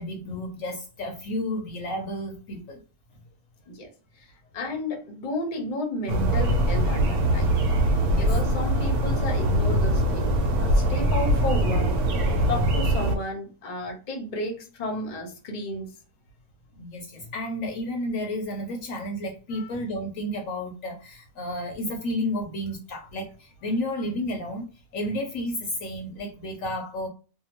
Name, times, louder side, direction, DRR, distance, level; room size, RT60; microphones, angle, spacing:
voice 1, 0.0-2.8 8.0-8.3 16.8-27.1, left 1 dB, 70° left, 3 dB, 0.9 m, -32 dB
voice 2, 4.2-7.5 8.2-12.0 12.5-15.9 19.5-19.7, left 1 dB, 45° left, 2 dB, 0.7 m, -32 dB
sound 1, 6.1-13.2, right 1 dB, 85° right, 1.1 m, -22 dB
2.7 x 2.1 x 2.8 m, 0.35 s
omnidirectional pair, 1.6 m